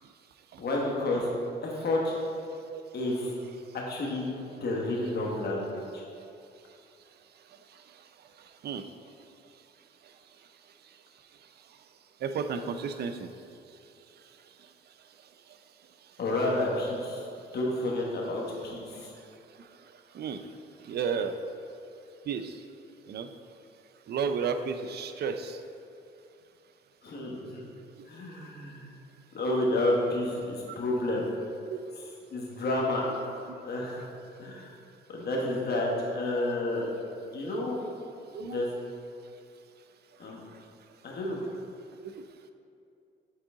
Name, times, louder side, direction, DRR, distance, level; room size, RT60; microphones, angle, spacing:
voice 1, 0.6-1.3 1.6-2.1 2.9-3.3 3.7-4.3 4.6-6.0 16.2-17.2 17.5-19.1 27.0-27.6 28.1-28.9 29.3-31.2 32.3-33.1 33.6-34.0 34.4-34.7 35.1-36.9 37.3-37.8 38.4-38.7 40.2-40.4 41.0-41.4, left 1 dB, 55° left, -2 dB, 1.3 m, -30 dB
voice 2, 12.2-13.3 20.1-20.4 20.8-21.4 22.3-22.6 23.1-23.3 24.1-25.6 30.7-30.8 31.7-31.8 37.5-37.6 38.3-38.6, right 6 dB, 55° right, 8 dB, 0.5 m, -32 dB
7.7 x 3.7 x 3.7 m, 2.6 s
cardioid pair, 90°, 20 cm